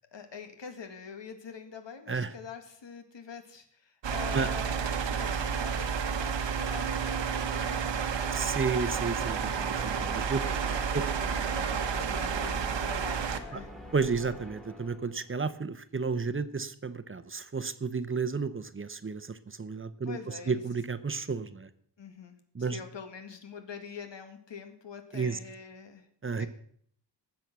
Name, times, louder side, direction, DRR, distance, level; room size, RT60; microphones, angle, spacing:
voice 1, 0.1-8.5 9.9-13.7 20.0-20.6 22.0-26.1 26.4-26.5, left 6 dB, 85° left, 6 dB, 2.0 m, -45 dB
sound 1, 4.0-13.4, right 7 dB, 90° right, 1.3 m, -31 dB
voice 2, 8.3-10.4 10.9-11.0 13.5-13.6 13.9-21.7 22.5-22.8 25.1-25.4 26.2-26.5, right 4 dB, 30° right, 12 dB, 0.7 m, -32 dB
sound 2, 8.5-15.3, equal, ahead, 1.8 m, -46 dB
Train, 8.9-14.7, left 2 dB, 30° left, 1.3 m, -48 dB
19.0 x 7.8 x 6.0 m, 0.62 s
wide cardioid pair, 150°, 42 cm